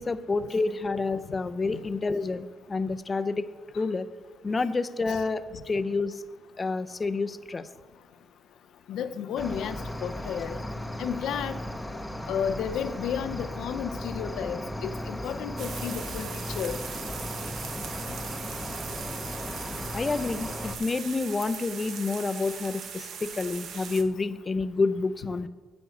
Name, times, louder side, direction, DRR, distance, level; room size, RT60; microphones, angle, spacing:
voice 1, 0.0-3.5 3.8-4.1 4.4-6.2 6.6-7.7 19.9-25.5, left 3 dB, 30° left, 11 dB, 0.5 m, -29 dB
voice 2, 8.9-10.6 11.0-11.6 12.3-16.3 16.5-16.8, left 8 dB, 80° left, 9 dB, 0.5 m, -32 dB
Cricket, 9.4-20.7, left 1 dB, 5° left, 0.8 m, -36 dB
sound 1, 15.6-24.0, right 7 dB, 70° right, 0.9 m, -40 dB
9.2 x 5.3 x 7.7 m, 1.4 s
cardioid pair, 90°, 0 cm